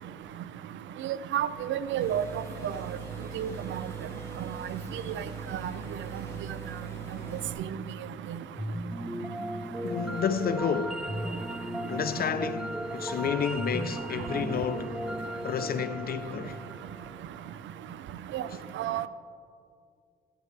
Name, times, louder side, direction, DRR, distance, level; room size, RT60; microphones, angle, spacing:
voice 1, 1.3-2.2 2.6-2.7 3.4-3.8 18.3-18.4 18.8-19.1, right 10 dB, 70° right, 0.5 m, -29 dB
sound 1, 2.0-7.5, right 4 dB, 15° left, 2.6 m, -41 dB
sound 2, 8.6-17.7, equal, 5° right, 0.4 m, -36 dB
voice 2, 9.8-11.1 11.9-15.0 15.4-16.6 18.5-18.6, left 7 dB, 50° left, 0.6 m, -31 dB
15.0 x 11.0 x 3.3 m
cardioid pair, 90°, 20 cm